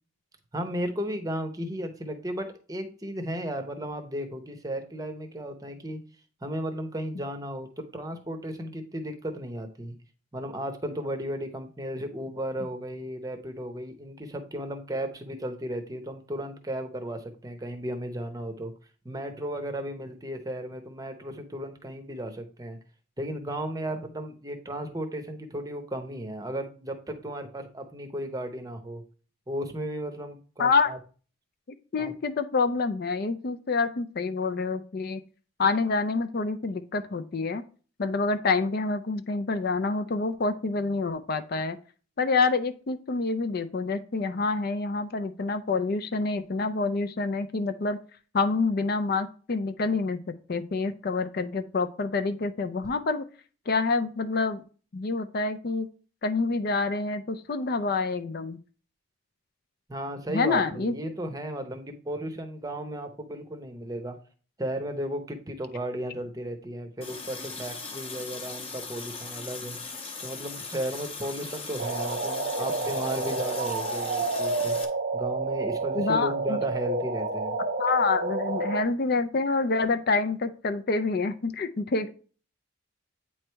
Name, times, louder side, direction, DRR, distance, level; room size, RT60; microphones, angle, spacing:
voice 1, 0.5-6.0 6.4-9.9 10.3-18.7 19.0-22.8 23.2-29.0 29.5-31.0 32.0-32.1 59.9-64.2 64.6-69.8 70.2-74.8 75.1-77.6, right 1 dB, 15° right, 6 dB, 0.7 m, -35 dB
voice 2, 30.6-30.9 31.9-35.2 35.6-37.6 38.0-41.8 42.2-48.0 48.3-50.2 50.5-53.2 53.7-54.6 54.9-55.9 56.2-58.6 60.3-60.9 75.9-76.6 77.8-82.1, left 4 dB, 45° left, 9 dB, 0.4 m, -27 dB
Water tap faucet, 67.0-74.8, left 4 dB, 30° left, 0.9 m, -39 dB
sound 1, 71.8-78.8, right 3 dB, 50° right, 0.7 m, -29 dB
8.6 x 3.2 x 4.4 m, 0.39 s
head